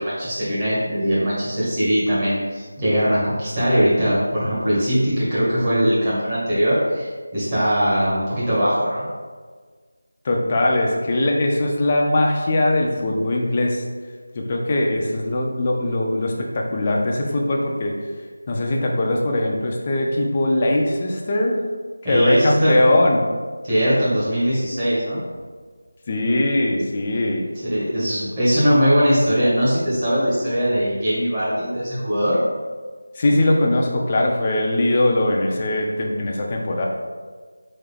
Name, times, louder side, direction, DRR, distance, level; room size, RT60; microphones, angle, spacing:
voice 1, 0.0-9.1 22.0-22.8 23.6-25.2 27.6-32.4, equal, 25° right, -10 dB, 1.4 m, -20 dB
voice 2, 10.2-13.8 14.3-17.9 18.5-21.6 22.0-23.2 26.1-27.5 33.1-36.9, left 1 dB, 25° left, 0 dB, 0.5 m, -20 dB
3.8 x 3.7 x 3.4 m, 1.5 s
figure-of-eight pair, 170°, 0 cm